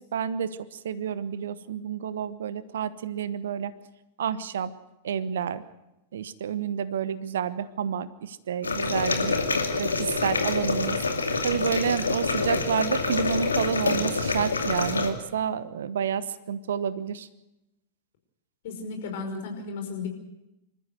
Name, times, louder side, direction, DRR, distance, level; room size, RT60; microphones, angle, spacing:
voice 1, 0.0-3.7 4.2-4.7 5.0-5.6 6.1-9.4 9.8-11.0 11.4-17.3, right 8 dB, 60° right, 15 dB, 1.1 m, -29 dB
sound 1, 8.6-15.1, left 3 dB, 75° left, 2.5 m, -26 dB
voice 2, 18.6-20.1, left 4 dB, 50° left, 4 dB, 5.2 m, -34 dB
26.5 x 14.0 x 8.1 m, 0.93 s
figure-of-eight pair, 95°, 0 cm